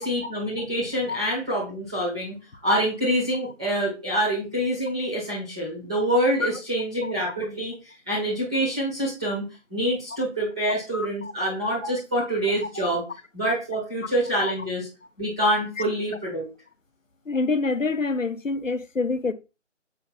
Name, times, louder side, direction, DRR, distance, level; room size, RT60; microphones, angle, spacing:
voice 1, 0.0-2.4 2.6-9.4 9.7-13.0 13.3-14.9 15.2-16.4, right 1 dB, 5° right, 0.9 m, -26 dB
voice 2, 10.9-11.3 12.7-12.9 14.4-14.5 17.3-19.3, left 3 dB, 90° left, 1.2 m, -26 dB
7.8 x 5.3 x 4.1 m
figure-of-eight pair, 165°, 37 cm